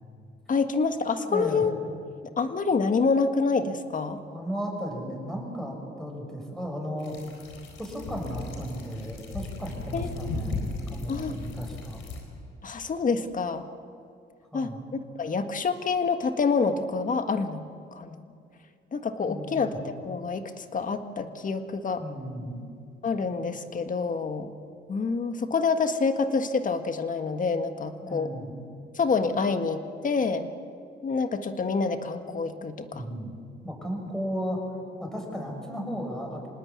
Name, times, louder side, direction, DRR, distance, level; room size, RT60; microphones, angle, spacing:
voice 1, 0.5-1.8 2.2-4.2 9.9-10.4 11.1-11.4 12.6-13.7 14.5-17.6 17.9-18.3 18.9-22.0 23.0-24.5 24.9-28.3 28.9-30.5 31.0-33.0, left 4 dB, 40° left, 8 dB, 1.7 m, -27 dB
voice 2, 1.2-1.6 4.3-7.2 7.8-12.0 14.5-14.9 19.2-19.8 22.0-22.7 28.0-28.5 32.9-33.3 33.6-34.6 35.0-36.5, equal, ahead, 1 dB, 7.3 m, -35 dB
sound 1, 7.0-12.2, left 3 dB, 85° left, 4.4 m, -36 dB
26.5 x 19.0 x 8.7 m, 2.4 s
cardioid pair, 90°, 20 cm